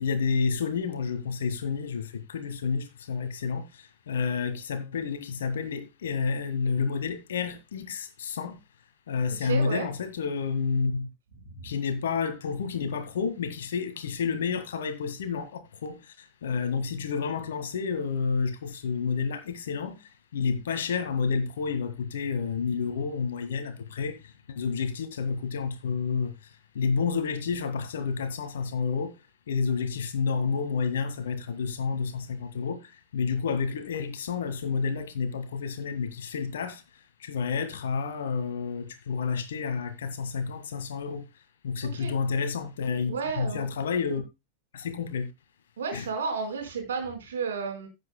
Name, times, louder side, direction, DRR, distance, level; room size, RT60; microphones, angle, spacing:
voice 1, 0.0-8.6 9.1-11.1 11.6-20.0 20.3-26.3 26.8-29.2 29.5-36.8 37.2-41.2 41.6-44.2 44.7-45.3 45.9-46.1, left 5 dB, 65° left, 1.8 m, -30 dB
voice 2, 9.4-9.9 11.5-11.7 41.9-42.1 43.1-43.7 45.8-47.9, right 5 dB, 65° right, 4.3 m, -32 dB
16.0 x 7.9 x 2.2 m
figure-of-eight pair, 90°, 0 cm